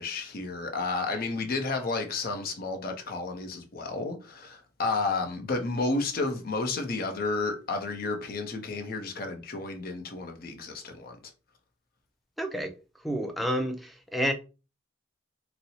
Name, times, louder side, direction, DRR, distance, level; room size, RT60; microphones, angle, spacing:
voice 1, 0.0-11.2, left 3 dB, 55° left, 0.6 m, -31 dB
voice 2, 12.4-12.7 13.0-14.3, equal, ahead, 0.4 m, -29 dB
4.1 x 2.0 x 2.7 m
head